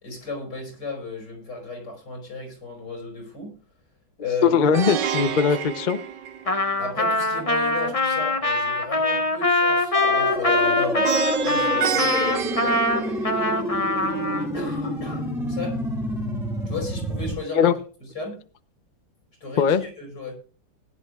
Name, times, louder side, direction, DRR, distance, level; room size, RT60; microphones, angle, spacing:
voice 1, 0.0-3.5 4.2-4.6 6.8-11.1 11.4-13.4 14.5-15.8 16.7-17.7 18.0-18.4 19.4-20.3, left 3 dB, 70° left, 1 dB, 5.7 m, -34 dB
voice 2, 4.4-6.0 17.5-17.7 19.6-19.8, left 7 dB, 55° left, 10 dB, 0.5 m, -20 dB
Plucked string instrument, 4.7-6.9 11.0-13.6, right 9 dB, 75° right, 1.4 m, -29 dB
Trumpet, 6.5-14.5, left 2 dB, 25° left, 1.0 m, -23 dB
sound 1, 9.9-17.3, equal, ahead, 2.5 m, -28 dB
20.0 x 11.0 x 2.4 m, 0.39 s
omnidirectional pair, 2.0 m